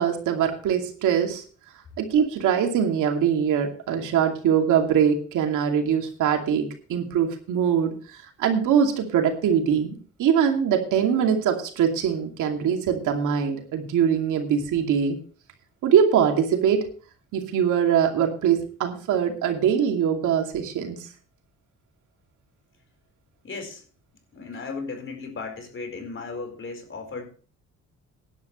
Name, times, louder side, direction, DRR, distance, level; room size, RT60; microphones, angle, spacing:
voice 1, 0.0-1.4 2.0-15.2 15.8-16.9 17.3-21.1, right 8 dB, 85° right, 3 dB, 2.6 m, -22 dB
voice 2, 23.4-23.8 24.3-27.3, left 4 dB, 40° left, 6 dB, 4.5 m, -35 dB
16.5 x 11.0 x 3.2 m, 0.39 s
cardioid pair, 90°, 30 cm